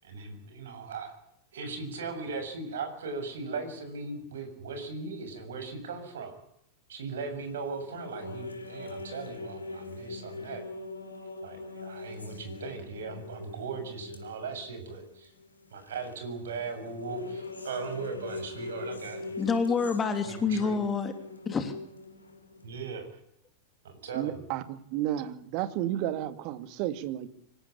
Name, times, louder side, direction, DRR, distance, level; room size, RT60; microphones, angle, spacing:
voice 1, 0.0-1.2 1.5-6.3 6.9-10.6 11.4-15.3 15.7-19.3 20.2-20.8 22.6-23.1 23.8-24.4, right 4 dB, 60° right, 7 dB, 7.1 m, -38 dB
sound 1, 7.4-22.9, left 3 dB, 80° left, 3.6 m, -42 dB
voice 2, 19.4-21.1 21.5-21.7, left 5 dB, 20° left, 8 dB, 2.8 m, -27 dB
voice 3, 24.1-27.3, right 12 dB, 45° right, 12 dB, 2.2 m, -32 dB
25.5 x 17.5 x 9.9 m, 0.73 s
figure-of-eight pair, 90°, 0 cm